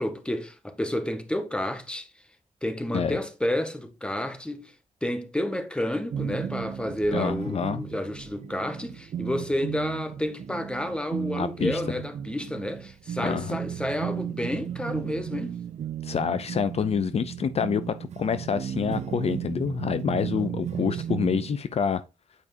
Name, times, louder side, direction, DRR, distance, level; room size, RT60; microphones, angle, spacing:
voice 1, 0.0-2.1 2.6-4.7 5.0-15.6 20.1-20.5 20.9-21.0, left 1 dB, 10° left, 1.0 m, -30 dB
sound 1, 6.1-21.6, right 9 dB, 65° right, 0.4 m, -35 dB
voice 2, 7.1-7.9 11.4-11.8 13.2-13.6 16.0-22.0, left 7 dB, 55° left, 0.4 m, -27 dB
9.0 x 4.8 x 2.7 m
wide cardioid pair, 115°, 13 cm